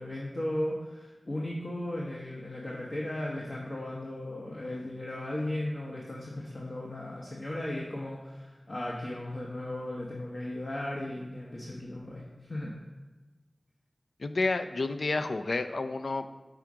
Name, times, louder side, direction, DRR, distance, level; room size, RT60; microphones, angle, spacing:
voice 1, 0.0-12.7, left 1 dB, 55° left, -4 dB, 0.9 m, -36 dB
voice 2, 14.2-16.3, left 3 dB, 85° left, 9 dB, 0.3 m, -30 dB
5.8 x 3.5 x 4.8 m, 1.2 s
wide cardioid pair, 50°, 0 cm